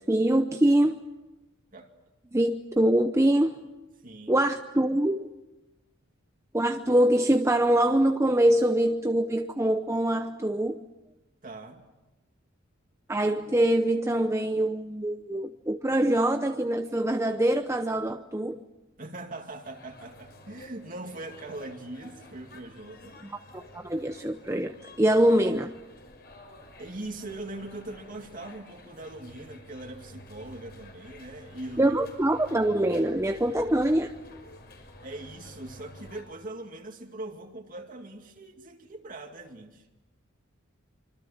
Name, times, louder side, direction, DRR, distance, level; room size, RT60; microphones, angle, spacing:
voice 1, 0.1-1.0 2.3-3.6 4.3-5.3 6.5-10.8 13.1-18.6 23.2-25.7 31.8-34.1, right 1 dB, 15° right, 6 dB, 0.8 m, -24 dB
voice 2, 4.0-4.4 11.4-11.8 19.0-23.2 26.8-32.0 35.0-39.9, right 2 dB, 40° right, 3 dB, 2.4 m, -41 dB
sound 1, 19.6-36.2, left 1 dB, 50° left, 5.8 m, -50 dB
26.0 x 25.5 x 7.3 m, 1.1 s
head